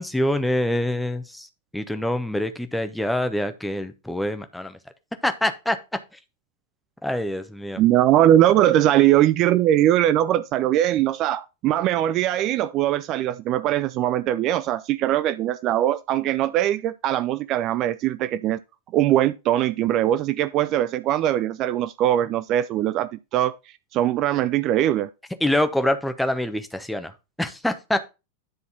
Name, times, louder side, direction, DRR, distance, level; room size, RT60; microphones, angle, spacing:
voice 1, 0.0-1.5 1.7-4.8 5.2-5.8 7.0-7.8 25.4-27.1 27.4-28.0, left 1 dB, 5° left, 0.9 m, -25 dB
voice 2, 7.8-18.6 18.9-23.6 23.9-25.1, right 12 dB, 35° right, 0.4 m, -21 dB
10.5 x 4.1 x 4.1 m
figure-of-eight pair, 90°, 0 cm